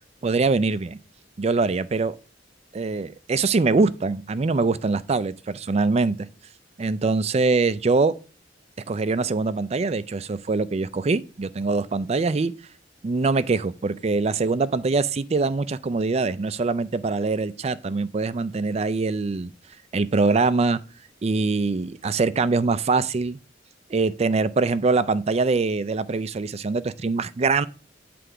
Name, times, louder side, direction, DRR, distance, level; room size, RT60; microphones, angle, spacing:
voice 1, 0.2-1.0 1.4-2.1 2.7-6.3 6.8-8.2 8.9-12.5 13.0-19.5 19.9-20.8 21.2-23.4 23.9-27.7, right 3 dB, 35° right, 0.4 m, -23 dB
9.5 x 3.4 x 4.9 m
head